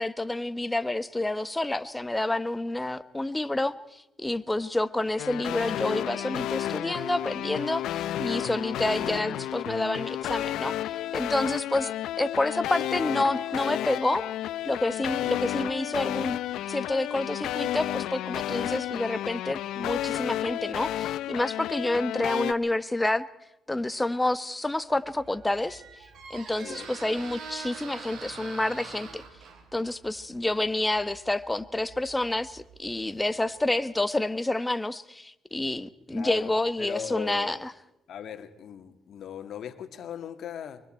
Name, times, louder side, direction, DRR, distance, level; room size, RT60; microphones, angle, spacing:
voice 1, 0.0-11.9 12.2-14.3 14.6-16.4 16.7-23.2 23.7-25.8 26.3-29.2 29.7-37.7, left 2 dB, 10° left, 12 dB, 1.3 m, -29 dB
sound 1, 5.2-22.5, left 12 dB, 85° left, 0.7 m, -32 dB
Squeak, 24.9-33.7, right 5 dB, 70° right, 3.8 m, -45 dB
voice 2, 26.6-26.9 36.1-37.6 38.1-40.8, left 9 dB, 70° left, 8 dB, 2.1 m, -38 dB
24.0 x 24.0 x 4.5 m, 0.84 s
cardioid pair, 90°, 0 cm